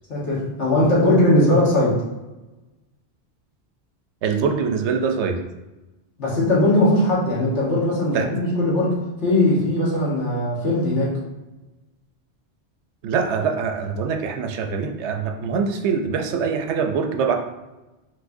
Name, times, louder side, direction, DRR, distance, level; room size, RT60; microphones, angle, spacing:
voice 1, 0.1-2.0 6.2-11.1, left 1 dB, 90° left, -6 dB, 1.6 m, -19 dB
voice 2, 4.2-5.4 8.1-8.3 13.0-17.3, right 6 dB, 80° right, 5 dB, 0.9 m, -23 dB
5.4 x 3.1 x 2.6 m, 1.1 s
omnidirectional pair, 1.1 m